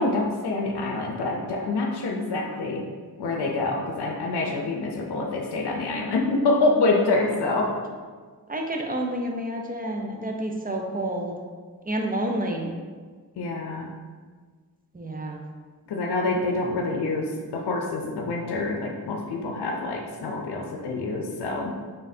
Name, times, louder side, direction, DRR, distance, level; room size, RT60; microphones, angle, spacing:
voice 1, 0.0-2.8 3.2-7.7 13.4-13.9 15.9-21.8, left 2 dB, 90° left, 0 dB, 0.6 m, -26 dB
voice 2, 8.5-11.4 11.9-12.7 14.9-15.4, right 1 dB, 20° right, 1 dB, 0.6 m, -29 dB
4.0 x 3.8 x 2.7 m, 1.5 s
cardioid pair, 55°, 39 cm